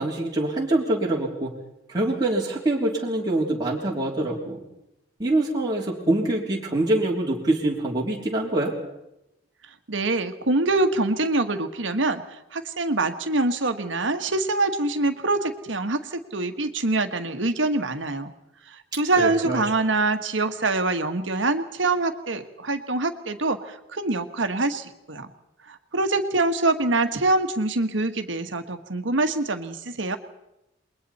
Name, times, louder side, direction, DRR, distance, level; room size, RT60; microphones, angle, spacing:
voice 1, 0.0-1.5 1.9-4.6 5.2-8.7 19.2-19.6, right 1 dB, 20° right, -4 dB, 3.2 m, -24 dB
voice 2, 9.9-12.2 12.5-18.3 18.9-25.3 25.9-30.2, right 2 dB, 80° right, 7 dB, 1.5 m, -24 dB
28.0 x 21.5 x 4.3 m, 0.89 s
head